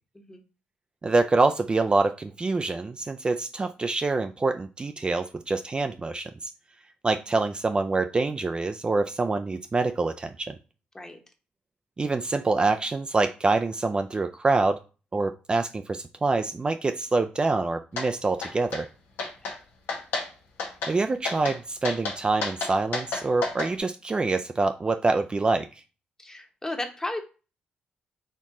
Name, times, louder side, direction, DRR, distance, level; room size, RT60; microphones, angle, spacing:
voice 1, 1.0-6.5 7.0-10.5 12.0-14.8 15.1-18.9 20.9-25.7, right 3 dB, 30° right, 7 dB, 0.3 m, -25 dB
sound 1, 18.0-18.1 18.4-18.8 19.2-19.6 19.9-20.3 20.6-20.9 21.3-21.6 21.8-23.7, left 4 dB, 85° left, 1.0 m, -31 dB
voice 2, 26.2-27.2, left 2 dB, 15° left, 4 dB, 1.0 m, -34 dB
4.4 x 3.0 x 3.6 m, 0.34 s
cardioid pair, 65°, 3 cm